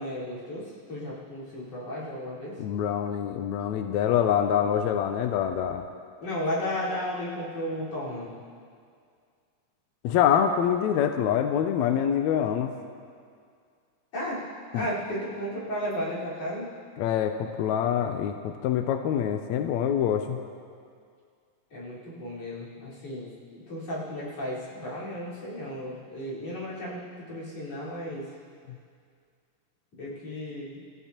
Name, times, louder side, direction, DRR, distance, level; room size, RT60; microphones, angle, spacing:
voice 1, 0.0-2.6 6.2-8.3 14.1-14.4 14.7-16.7 21.7-28.3 30.0-30.8, left 1 dB, 50° left, -8 dB, 5.6 m, -34 dB
voice 2, 2.6-5.8 10.0-12.7 14.7-14.9 17.0-20.4, left 9 dB, 80° left, 6 dB, 1.7 m, -25 dB
28.0 x 14.5 x 3.0 m, 2.2 s
omnidirectional pair, 3.7 m